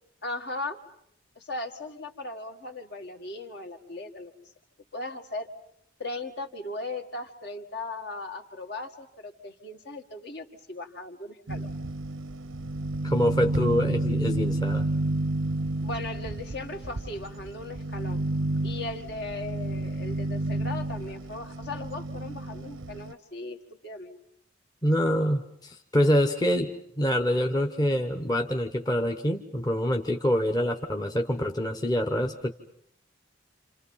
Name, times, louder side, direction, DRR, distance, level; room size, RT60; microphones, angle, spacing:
voice 1, 0.2-0.8 1.4-4.3 4.9-5.5 6.0-11.7 15.8-18.2 18.6-23.6 23.8-24.2, left 2 dB, 55° left, 4 dB, 2.1 m, -37 dB
sound 1, 11.5-23.1, right 2 dB, 90° right, 0.9 m, -31 dB
voice 2, 13.0-14.9 24.8-32.5, equal, 20° left, 4 dB, 1.1 m, -26 dB
29.5 x 27.5 x 5.7 m, 0.68 s
head